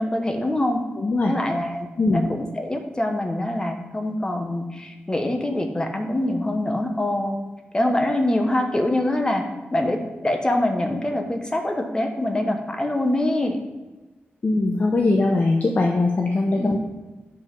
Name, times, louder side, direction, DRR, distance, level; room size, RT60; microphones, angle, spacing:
voice 1, 0.0-0.8 1.2-7.4 7.7-9.4 9.7-13.6 16.6-16.8, left 1 dB, 20° left, 4 dB, 1.0 m, -24 dB
voice 2, 1.0-1.3 2.0-2.3 14.4-16.8, left 2 dB, 40° left, 1 dB, 0.7 m, -21 dB
7.9 x 5.3 x 5.3 m, 1.2 s
wide cardioid pair, 115°, 4 cm